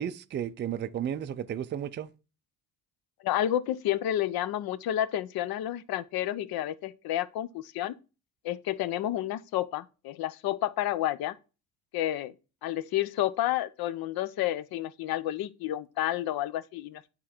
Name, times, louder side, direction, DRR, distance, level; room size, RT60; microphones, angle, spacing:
voice 1, 0.0-2.1, right 9 dB, 30° right, 0.4 m, -33 dB
voice 2, 3.2-7.9 8.4-11.4 11.9-12.3 12.6-17.0, left 13 dB, 65° left, 0.7 m, -30 dB
9.0 x 3.8 x 4.4 m
cardioid pair, 125°, 39 cm